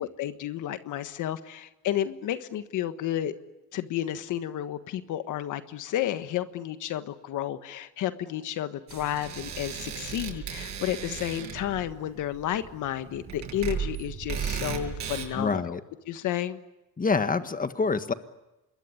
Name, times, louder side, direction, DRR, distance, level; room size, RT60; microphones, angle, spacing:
voice 1, 0.0-3.3 3.7-15.8 16.1-16.6, left 11 dB, 85° left, 10 dB, 1.5 m, -31 dB
sound 1, 8.9-15.3, right 7 dB, 65° right, 7.2 m, -36 dB
voice 2, 15.4-15.8 17.0-18.1, left 4 dB, 30° left, 10 dB, 1.7 m, -26 dB
26.5 x 22.0 x 9.7 m, 0.99 s
cardioid pair, 90°, 30 cm